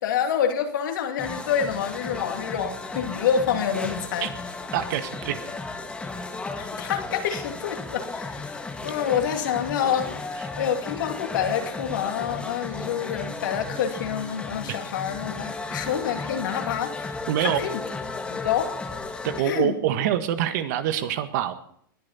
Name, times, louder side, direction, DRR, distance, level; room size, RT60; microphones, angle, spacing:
voice 1, 0.0-4.3 6.6-8.5 8.8-10.1 10.6-17.1 17.4-17.8 18.3-18.7 19.4-19.7, left 8 dB, 60° left, 4 dB, 2.6 m, -27 dB
sound 1, 1.2-19.4, left 3 dB, 10° left, 1.6 m, -34 dB
voice 2, 4.7-5.4 14.7-14.8 17.3-17.6 19.2-21.5, right 11 dB, 50° right, 10 dB, 1.6 m, -25 dB
21.0 x 10.0 x 4.3 m, 0.65 s
hypercardioid pair, 115°, 12 cm